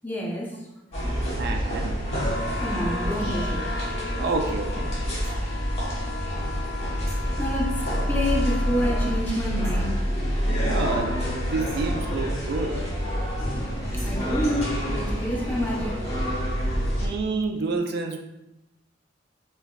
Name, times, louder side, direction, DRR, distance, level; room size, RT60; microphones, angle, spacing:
voice 1, 0.0-0.7 2.6-3.7 7.4-10.0 13.9-16.1, equal, 10° left, -3 dB, 0.5 m, -28 dB
sound 1, 0.9-17.1, equal, 35° left, 1.2 m, -27 dB
voice 2, 1.4-2.0 4.2-5.3 10.6-12.8 17.0-18.2, right 3 dB, 60° right, 4 dB, 0.4 m, -29 dB
sound 2, 2.0-9.2, left 4 dB, 70° left, 0.4 m, -37 dB
sound 3, 5.2-5.4 7.1-7.3 9.6-9.9 11.6-11.9 13.9-14.3, right 1 dB, 35° right, 0.9 m, -46 dB
4.5 x 2.2 x 2.3 m, 0.93 s
head